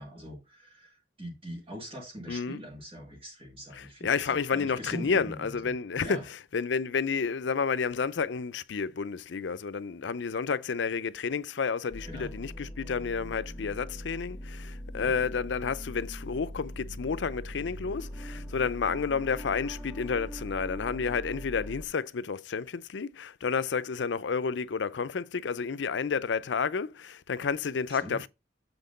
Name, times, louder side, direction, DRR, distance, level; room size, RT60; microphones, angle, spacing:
voice 1, 0.0-5.7 6.0-6.2 12.1-12.3 14.9-15.1 18.0-18.1 27.9-28.2, equal, 30° right, 2.2 m, -42 dB
voice 2, 2.3-2.6 3.7-6.2 6.5-28.3, left 5 dB, 75° left, 0.5 m, -30 dB
sound 1, 11.9-21.8, equal, 10° left, 1.5 m, -41 dB
7.9 x 3.7 x 5.2 m
head